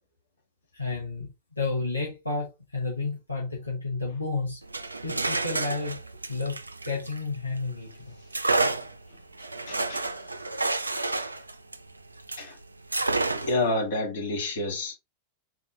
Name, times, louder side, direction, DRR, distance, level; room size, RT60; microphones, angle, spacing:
voice 1, 0.7-1.3 1.6-4.6 5.0-6.0 6.3-6.6 6.8-7.9, left 3 dB, 85° left, 1.1 m, -31 dB
sound 1, 4.6-7.7 8.3-12.5 12.9-13.7, right 3 dB, 80° right, 0.3 m, -30 dB
voice 2, 9.7-10.1 11.2-11.3 12.4-12.5 13.3-14.9, left 2 dB, 55° left, 1.7 m, -29 dB
4.0 x 2.8 x 3.2 m
figure-of-eight pair, 90°, 0 cm